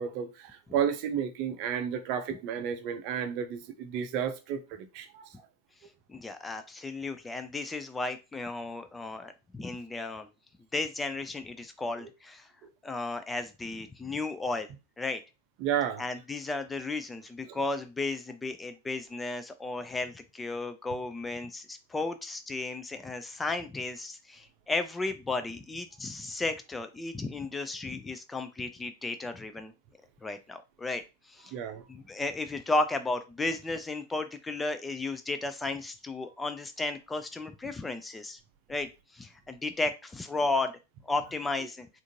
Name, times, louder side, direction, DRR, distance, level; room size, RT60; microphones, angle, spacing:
voice 1, 0.0-5.5 12.0-12.1 12.6-12.7 15.6-16.0 17.5-17.6 31.5-31.9 36.3-36.4, right 8 dB, 45° right, 0.5 m, -32 dB
voice 2, 6.1-10.3 10.7-12.5 12.8-14.7 15.0-15.2 16.0-29.7 30.2-31.5 31.9-38.4 38.7-40.7 41.0-41.9, left 2 dB, 10° left, 0.3 m, -34 dB
3.5 x 2.5 x 2.7 m
figure-of-eight pair, 90°, 0 cm